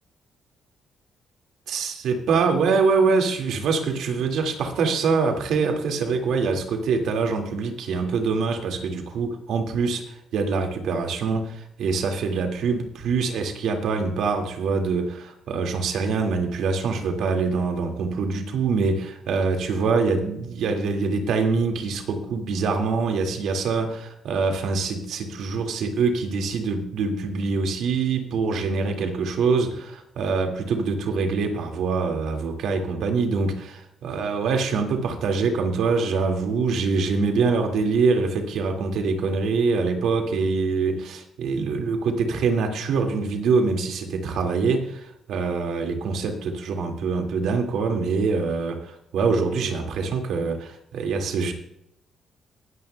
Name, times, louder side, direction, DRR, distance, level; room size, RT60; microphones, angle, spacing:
voice 1, 1.7-51.5, right 4 dB, 75° right, 4 dB, 1.9 m, -24 dB
19.5 x 9.8 x 2.2 m, 0.78 s
cardioid pair, 90°, 0 cm